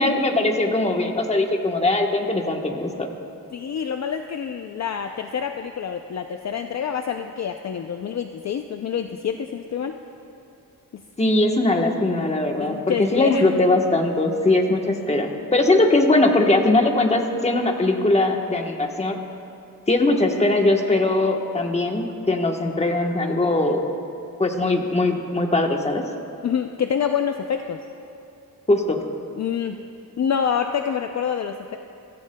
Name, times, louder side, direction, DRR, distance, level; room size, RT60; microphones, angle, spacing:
voice 1, 0.0-3.1 11.2-19.2 19.9-23.8 24.4-26.1 28.7-29.0, left 2 dB, 20° left, 3 dB, 1.1 m, -20 dB
voice 2, 3.5-10.0 10.9-11.0 12.6-13.6 26.4-27.8 29.4-29.8 30.2-31.8, left 7 dB, 50° left, 6 dB, 0.5 m, -27 dB
23.5 x 15.0 x 2.2 m, 2.7 s
wide cardioid pair, 110°, 35 cm